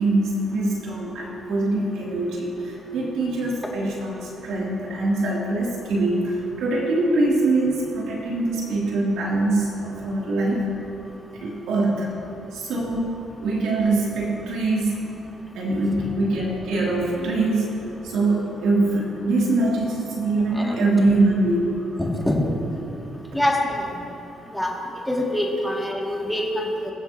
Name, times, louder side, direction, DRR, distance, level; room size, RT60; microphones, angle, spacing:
voice 1, 0.0-10.6 11.4-12.1 12.5-15.0 15.5-17.7 18.1-21.7, right 2 dB, 90° right, -4 dB, 2.5 m, -23 dB
voice 2, 22.0-22.4 23.3-23.9 24.5-24.7 25.1-26.9, left 1 dB, 5° left, -2 dB, 2.0 m, -24 dB
22.0 x 7.6 x 2.7 m, 3.0 s
cardioid pair, 90°, 0 cm